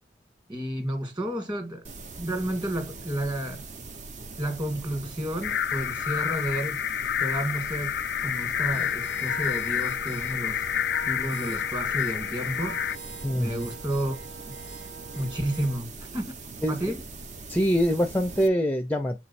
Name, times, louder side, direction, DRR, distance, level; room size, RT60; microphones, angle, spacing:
voice 1, 0.5-1.8 2.2-3.6 4.4-6.8 7.2-8.0 8.2-10.6 11.0-12.8 13.3-14.2 15.1-16.3 16.7-17.0, right 1 dB, 25° right, 2.0 m, -31 dB
sound 1, 1.8-18.5, right 3 dB, 45° right, 0.7 m, -42 dB
sound 2, 5.4-13.0, left 9 dB, 65° left, 0.3 m, -29 dB
sound 3, 8.7-15.8, right 4 dB, 85° right, 1.8 m, -44 dB
voice 2, 13.2-13.7 16.6-16.9 17.5-19.2, equal, 10° left, 0.5 m, -24 dB
7.3 x 3.1 x 4.1 m
head